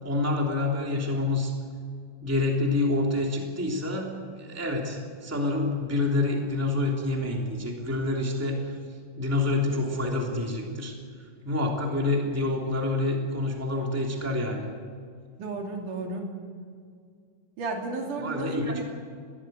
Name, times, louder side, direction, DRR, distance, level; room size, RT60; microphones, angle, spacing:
voice 1, 0.0-1.5 2.2-4.1 4.4-8.7 9.2-10.9 11.4-14.7 18.2-18.9, left 2 dB, 5° right, 0 dB, 2.7 m, -27 dB
voice 2, 15.4-16.3 17.6-18.9, right 3 dB, 70° right, 1 dB, 4.3 m, -33 dB
21.0 x 16.5 x 9.3 m, 2.1 s
omnidirectional pair, 3.8 m